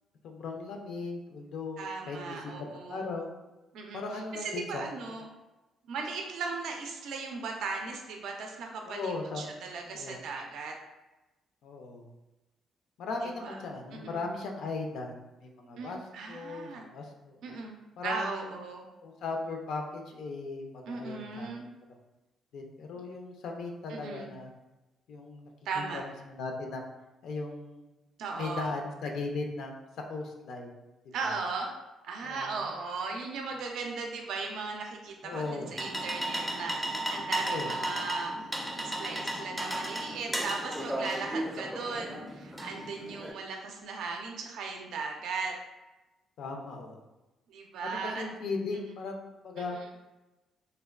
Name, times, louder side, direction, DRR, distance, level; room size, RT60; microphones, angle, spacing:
voice 1, 0.2-2.5 2.9-3.4 3.9-5.0 8.8-9.5 9.9-10.2 11.6-12.1 13.0-16.0 16.3-17.6 18.0-18.5 19.0-21.5 21.8-22.0 22.5-24.5 25.1-25.5 25.7-26.9 27.2-27.8 28.3-29.8 30.1-30.8 32.2-32.5 35.2-35.7 37.4-37.7 46.4-47.0 47.8-49.2 49.4-49.8, left 3 dB, 75° left, 2 dB, 0.4 m, -37 dB
voice 2, 1.8-3.0 3.7-4.0 4.4-5.3 5.9-10.8 13.2-13.6 14.0-14.3 15.8-16.8 17.4-17.8 18.0-18.9 20.9-21.7 23.9-24.3 25.7-26.0 28.2-28.7 31.1-31.7 32.0-35.4 35.7-38.5 38.7-45.6 47.5-48.2 48.8-49.0, right 4 dB, 80° right, 2 dB, 0.4 m, -37 dB
sound 1, 35.3-43.3, right 1 dB, 5° right, 0.4 m, -35 dB
3.2 x 2.2 x 2.3 m, 1.1 s
cardioid pair, 90°, 0 cm